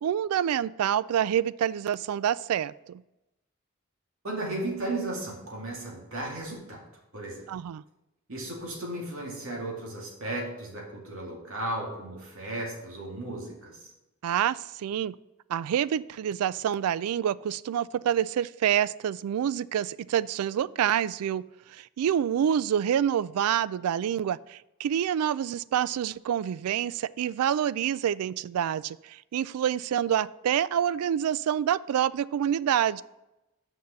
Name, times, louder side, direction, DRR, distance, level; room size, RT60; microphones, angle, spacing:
voice 1, 0.0-3.0 7.5-7.8 14.2-15.1 15.5-21.4 21.7-33.0, right 9 dB, 85° right, 18 dB, 0.3 m, -27 dB
voice 2, 4.2-6.8 7.1-7.4 8.3-13.9, right 1 dB, 70° right, -1 dB, 2.2 m, -35 dB
6.4 x 5.4 x 6.7 m, 0.94 s
head